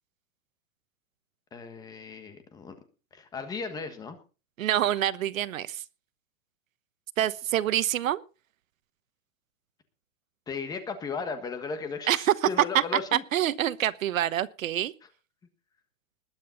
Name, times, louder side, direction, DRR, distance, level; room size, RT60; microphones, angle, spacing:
voice 1, 1.5-2.7 3.1-4.2 10.5-13.2 13.6-13.7, left 5 dB, 10° left, 1.4 m, -36 dB
voice 2, 4.6-5.8 7.2-8.2 12.1-12.3 13.1-14.9, right 12 dB, 85° right, 1.1 m, -26 dB
20.5 x 8.8 x 4.0 m
supercardioid pair, 170°, 39 cm